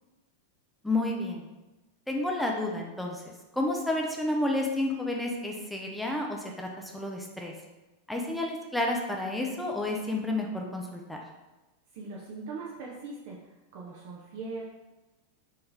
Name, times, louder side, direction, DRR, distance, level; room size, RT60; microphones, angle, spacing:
voice 1, 0.8-1.4 2.1-3.2 3.5-7.5 8.1-11.2, left 2 dB, 5° left, 0 dB, 0.6 m, -30 dB
voice 2, 11.9-14.6, right 3 dB, 50° right, -4 dB, 0.7 m, -40 dB
4.5 x 3.2 x 3.5 m, 1.1 s
figure-of-eight pair, 90°, 0 cm